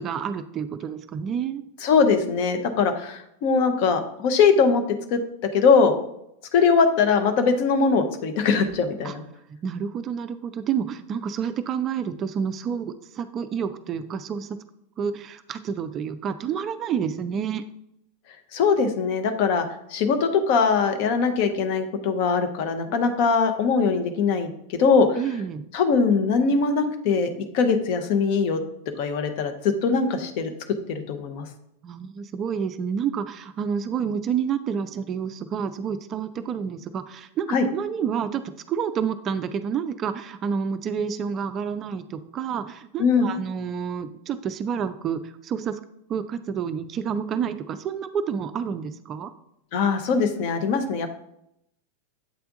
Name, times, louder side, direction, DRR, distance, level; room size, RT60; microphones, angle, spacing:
voice 1, 0.0-1.6 9.0-9.2 9.5-14.6 15.0-17.6 25.2-25.6 31.8-45.8 46.1-49.3, right 7 dB, 30° right, 11 dB, 0.3 m, -29 dB
voice 2, 1.8-4.8 5.1-5.2 5.5-5.9 6.5-9.2 18.5-19.7 19.9-25.2 25.7-27.3 27.5-28.6 29.0-30.5 30.9-31.5 37.5-37.7 43.0-43.3 49.7-51.1, left 5 dB, 45° left, 7 dB, 0.7 m, -21 dB
8.1 x 3.4 x 3.7 m, 0.77 s
figure-of-eight pair, 90°, 0 cm